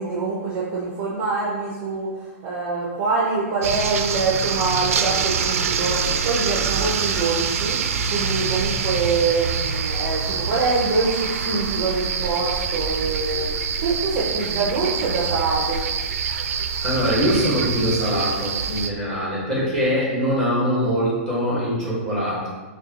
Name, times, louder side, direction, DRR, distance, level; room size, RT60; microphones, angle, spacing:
voice 1, 0.0-7.8 8.1-13.5 13.8-15.8 19.5-19.6, right 4 dB, 25° right, -5 dB, 0.5 m, -25 dB
sound 1, 3.6-18.9, right 6 dB, 80° right, 0.3 m, -25 dB
voice 2, 16.8-22.5, equal, 5° left, -7 dB, 1.1 m, -23 dB
6.4 x 2.2 x 2.8 m, 1.3 s
hypercardioid pair, 180°, 8 cm